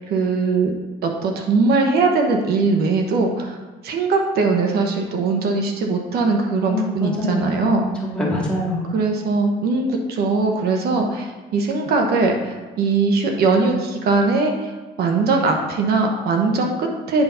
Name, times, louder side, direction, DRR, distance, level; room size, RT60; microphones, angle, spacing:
voice 1, 0.1-0.7 1.0-3.6 3.8-7.9 8.9-14.7 15.0-17.2, right 3 dB, 70° right, 2 dB, 1.1 m, -20 dB
voice 2, 6.7-8.9, left 1 dB, 5° left, -5 dB, 2.4 m, -25 dB
8.2 x 4.1 x 5.6 m, 1.3 s
cardioid pair, 110°, 17 cm